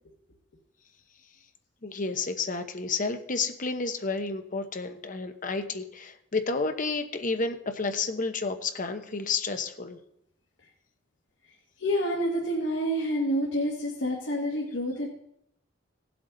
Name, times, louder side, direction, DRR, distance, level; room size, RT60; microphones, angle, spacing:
voice 1, 1.8-10.0, left 4 dB, 45° left, 7 dB, 1.0 m, -31 dB
voice 2, 11.8-15.1, equal, 75° left, -2 dB, 2.0 m, -28 dB
17.5 x 7.9 x 4.0 m, 0.77 s
head